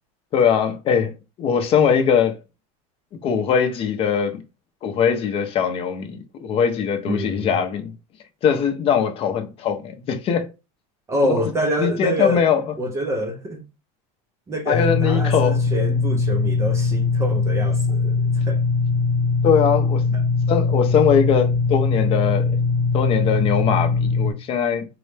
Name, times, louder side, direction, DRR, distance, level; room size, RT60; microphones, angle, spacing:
voice 1, 0.3-1.1 1.4-2.4 3.2-4.4 4.8-7.9 8.4-10.5 11.2-11.4 11.8-12.7 14.7-15.5 19.4-20.0 20.5-22.6 22.9-24.8, left 7 dB, 30° left, 0.6 m, -21 dB
voice 2, 7.1-7.6 11.1-12.4 12.8-13.6 14.5-18.6 20.1-20.2, equal, 15° right, 0.4 m, -26 dB
sound 1, 14.7-24.3, left 4 dB, 75° left, 0.6 m, -21 dB
3.7 x 2.1 x 3.2 m
supercardioid pair, 150°, 18 cm